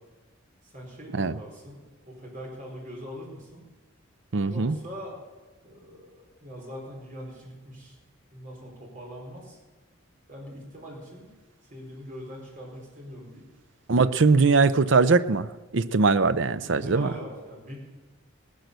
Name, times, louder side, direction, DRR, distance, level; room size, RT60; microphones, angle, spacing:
voice 1, 0.6-3.6 4.4-5.2 5.6-8.0 8.3-9.6 10.3-11.3 11.6-13.5 16.6-17.8, equal, 40° right, -2 dB, 4.3 m, -42 dB
voice 2, 4.3-4.8 13.9-15.5 15.7-17.1, right 4 dB, 60° right, 13 dB, 0.6 m, -21 dB
18.5 x 10.5 x 6.7 m, 1.2 s
head